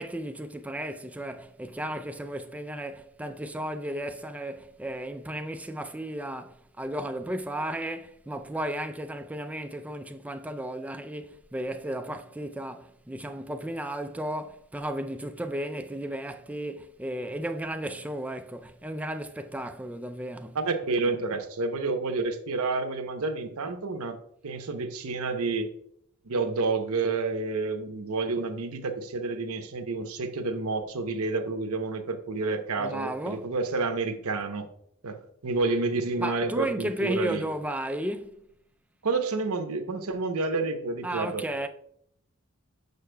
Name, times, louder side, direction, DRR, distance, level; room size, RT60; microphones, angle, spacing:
voice 1, 0.0-20.6 20.9-21.0 32.8-33.5 36.2-38.4 41.0-41.7, right 1 dB, 5° right, 0.3 m, -34 dB
voice 2, 20.5-24.2 24.4-25.7 26.3-34.7 35.0-37.4 39.0-41.4, right 3 dB, 85° right, 0.8 m, -29 dB
6.6 x 6.5 x 2.2 m
head